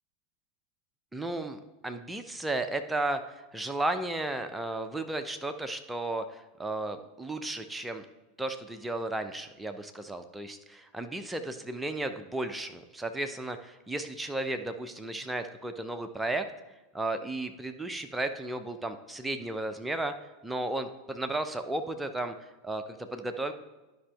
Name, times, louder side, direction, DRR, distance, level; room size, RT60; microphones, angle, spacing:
voice 1, 1.1-8.1 8.4-16.4 16.9-20.1 20.4-22.3 22.6-23.5, right 2 dB, 10° right, 6 dB, 0.7 m, -34 dB
11.5 x 5.2 x 3.5 m, 1.1 s
figure-of-eight pair, 85°, 0 cm